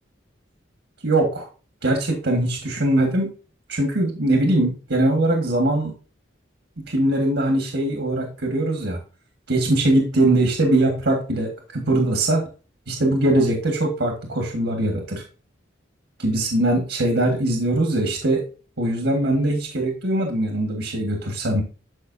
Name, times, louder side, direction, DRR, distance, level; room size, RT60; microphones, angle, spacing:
voice 1, 1.0-1.5 1.8-3.3 3.7-5.9 6.9-9.0 9.5-12.4 12.9-15.2 16.2-18.4 18.8-21.6, right 1 dB, 70° right, 2 dB, 1.6 m, -21 dB
11.5 x 5.4 x 2.7 m, 0.36 s
head